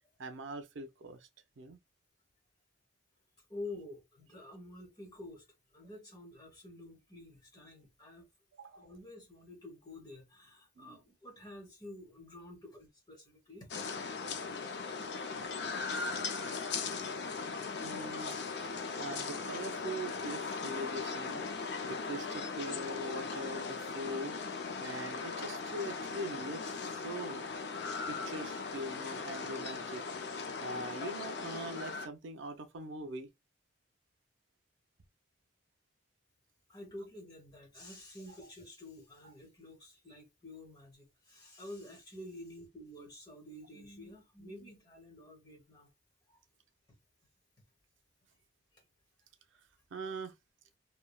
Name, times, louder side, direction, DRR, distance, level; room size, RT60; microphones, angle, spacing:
voice 1, 0.2-1.3 1.6-1.8 8.6-8.9 10.8-11.0 17.8-18.4 19.0-21.4 21.8-24.4 24.8-27.4 28.1-30.0 30.6-33.3 38.3-38.4 49.9-50.3, right 1 dB, 85° right, 0.5 m, -42 dB
voice 2, 3.5-5.4 5.7-8.2 8.8-13.7 36.7-45.9 46.3-46.4, left 1 dB, 20° left, 1.0 m, -49 dB
sound 1, 13.7-32.1, left 4 dB, 60° left, 0.5 m, -38 dB
3.2 x 2.2 x 2.2 m
head